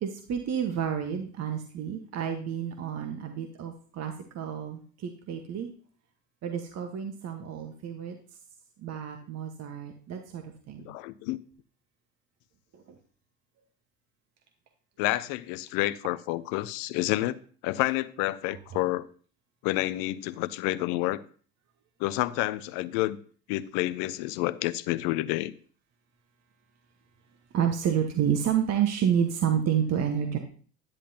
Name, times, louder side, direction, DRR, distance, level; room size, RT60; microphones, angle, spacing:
voice 1, 0.0-5.7 6.4-8.1 8.8-10.9 12.7-12.8 27.5-30.4, right 8 dB, 35° right, 1.3 m, -29 dB
voice 2, 10.8-11.4 15.0-19.1 19.6-21.2 22.0-23.2 23.5-25.5, left 17 dB, 50° left, 0.7 m, -29 dB
10.5 x 10.0 x 2.8 m
figure-of-eight pair, 70°, 45 cm